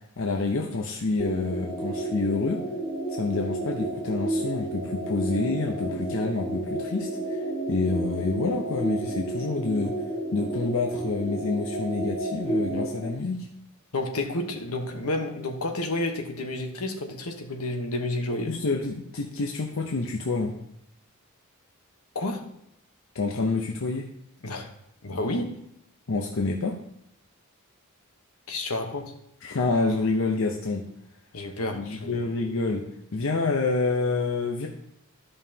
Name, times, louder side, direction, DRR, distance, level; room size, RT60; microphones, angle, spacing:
voice 1, 0.2-2.6 3.1-7.4 7.7-9.9 10.3-13.5 18.5-20.5 23.1-24.0 26.1-26.7 29.4-30.8 31.7-32.8 33.1-34.7, left 3 dB, 60° left, 1 dB, 0.7 m, -27 dB
sound 1, 1.2-13.1, right 1 dB, 15° left, 1.9 m, -31 dB
voice 2, 13.9-18.6 22.1-22.5 24.4-24.7 25.0-25.6 28.5-29.1 31.3-32.3, left 2 dB, 80° left, 5 dB, 1.1 m, -30 dB
12.5 x 5.5 x 2.8 m, 0.77 s
head